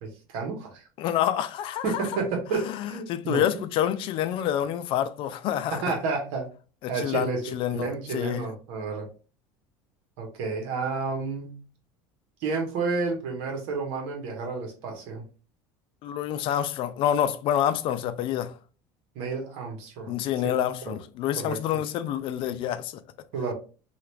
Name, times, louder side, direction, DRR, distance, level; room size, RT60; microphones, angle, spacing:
voice 1, 0.0-0.8 1.8-3.6 5.7-6.5 6.9-9.1 10.2-11.6 12.4-15.2 19.1-20.2 21.4-21.6 23.3-23.5, right 4 dB, 70° right, 1.2 m, -31 dB
voice 2, 1.0-2.0 2.5-6.0 6.8-8.4 16.0-18.5 20.1-23.0, left 10 dB, 50° left, 0.4 m, -28 dB
2.9 x 2.4 x 3.1 m
supercardioid pair, 115°, 11 cm